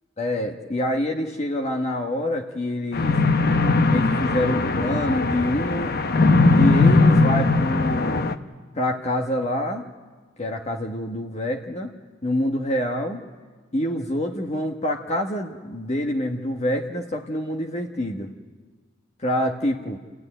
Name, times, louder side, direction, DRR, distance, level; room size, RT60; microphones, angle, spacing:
voice 1, 0.2-3.2 3.8-6.0 6.4-8.2 8.7-9.8 10.4-11.9 12.2-13.2 13.7-18.3 19.2-20.0, left 1 dB, 30° left, 2 dB, 1.2 m, -26 dB
sound 1, 2.9-8.3, left 3 dB, 50° left, 0.9 m, -19 dB
29.5 x 15.5 x 10.0 m, 1.4 s
head